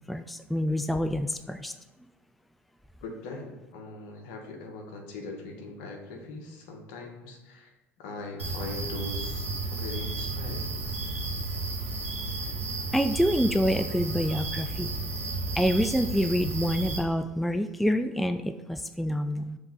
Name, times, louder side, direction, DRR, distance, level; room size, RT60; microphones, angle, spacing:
voice 1, 0.1-1.7 12.9-14.9 15.6-19.6, equal, ahead, 10 dB, 0.3 m, -27 dB
voice 2, 3.0-10.7, left 2 dB, 65° left, 2 dB, 1.2 m, -41 dB
sound 1, 8.4-17.0, right 3 dB, 90° right, 1.1 m, -33 dB
6.1 x 3.6 x 5.3 m, 1.1 s
hypercardioid pair, 70°, 7 cm